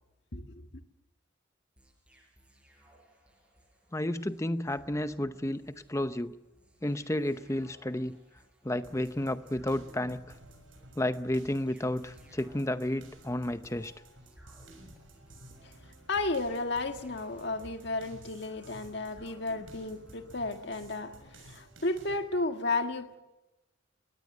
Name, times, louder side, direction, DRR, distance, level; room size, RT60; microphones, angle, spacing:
voice 1, 0.3-0.7 15.6-15.7 16.1-23.2, left 2 dB, 55° left, 6 dB, 1.7 m, -33 dB
sound 1, 1.8-20.9, equal, 5° right, 5.5 m, -60 dB
voice 2, 3.9-5.6 5.9-6.3 6.8-8.2 8.6-10.4 11.0-13.9, left 1 dB, 15° left, 11 dB, 0.7 m, -31 dB
sound 2, 8.8-22.2, right 1 dB, 75° right, 6.7 m, -54 dB
22.0 x 18.0 x 7.9 m, 1.0 s
head